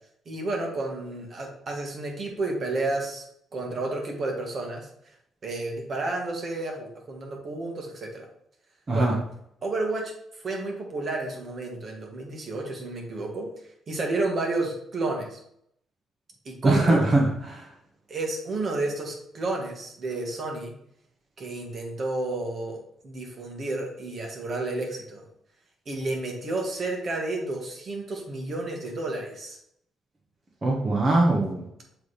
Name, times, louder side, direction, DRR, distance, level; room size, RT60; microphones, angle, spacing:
voice 1, 0.3-3.2 3.5-4.9 5.4-8.3 8.9-9.2 9.6-10.1 10.4-13.5 13.9-15.4 16.5-17.0 18.1-20.7 21.4-25.2 25.9-29.6, right 2 dB, 45° right, 1 dB, 1.8 m, -31 dB
voice 2, 16.6-17.7 30.6-31.6, right 2 dB, 30° right, -2 dB, 1.3 m, -22 dB
7.0 x 3.4 x 4.2 m, 0.71 s
cardioid pair, 90°, 0 cm